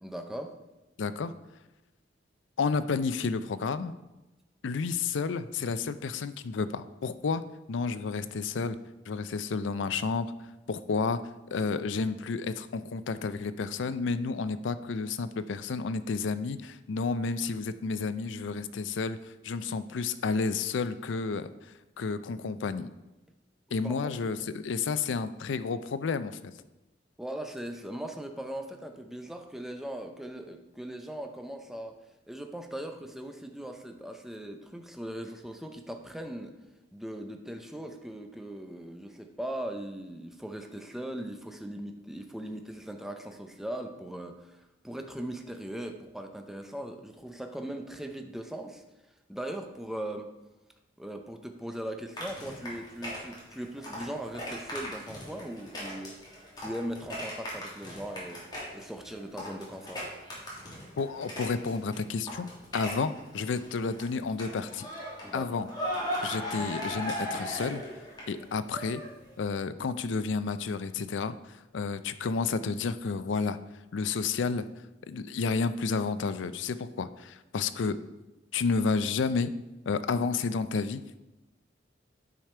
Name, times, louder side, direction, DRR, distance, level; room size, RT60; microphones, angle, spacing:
voice 1, 0.0-0.5 23.8-24.1 27.2-32.0 32.3-36.5 36.9-48.8 49.3-50.3 51.0-58.4 58.7-60.0 65.2-65.5, right 1 dB, ahead, 5 dB, 0.6 m, -39 dB
voice 2, 1.0-1.3 2.6-3.9 4.6-7.4 7.7-8.8 9.1-10.3 10.7-11.2 11.5-22.9 23.7-26.4 61.0-64.9 65.3-65.7 66.2-67.8 68.3-69.0 69.4-73.6 73.9-74.6 75.1-78.0 78.5-79.5 79.9-81.2, left 4 dB, 90° left, 13 dB, 0.4 m, -31 dB
sound 1, 52.2-62.0 62.3-64.0 64.4-69.3, equal, 25° left, 2.3 m, -38 dB
9.1 x 5.0 x 4.4 m, 1.0 s
head